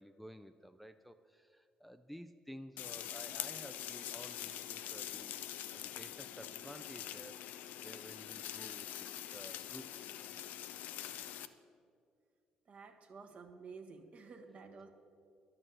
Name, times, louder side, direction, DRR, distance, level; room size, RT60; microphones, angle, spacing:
voice 1, 0.0-5.3 5.7-7.5 7.8-10.1, equal, ahead, 8 dB, 0.5 m, -53 dB
sound 1, 2.8-11.5, left 11 dB, 75° left, 0.4 m, -44 dB
voice 2, 12.7-14.9, right 4 dB, 50° right, 4 dB, 1.3 m, -52 dB
11.0 x 6.6 x 7.7 m, 2.3 s
supercardioid pair, 65°, 3 cm